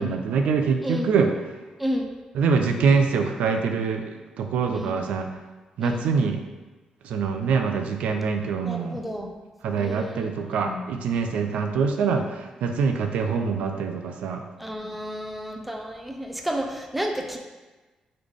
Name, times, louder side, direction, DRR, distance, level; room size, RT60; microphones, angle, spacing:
voice 1, 0.0-1.3 2.3-5.3 5.8-6.4 7.0-9.0 9.6-14.4, right 5 dB, 90° right, 5 dB, 0.4 m, -24 dB
voice 2, 0.8-1.1 1.8-2.1 4.7-5.0 5.8-6.1 8.6-9.3 9.7-10.9 14.6-17.4, equal, 5° right, 2 dB, 0.5 m, -31 dB
3.8 x 3.2 x 3.5 m, 1.2 s
cardioid pair, 115°, 2 cm